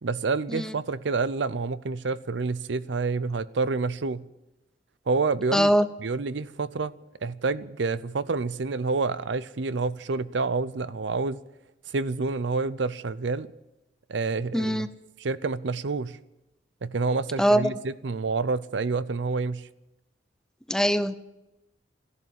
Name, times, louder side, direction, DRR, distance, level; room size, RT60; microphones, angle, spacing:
voice 1, 0.0-4.2 5.1-5.7 6.0-6.9 7.2-11.4 11.9-13.5 14.1-14.9 15.2-16.2 16.8-19.7, right 4 dB, 75° right, 0.6 m, -28 dB
voice 2, 5.5-5.9 14.5-14.9 17.4-17.7 20.7-21.2, equal, 5° left, 0.6 m, -22 dB
14.0 x 11.0 x 8.3 m
head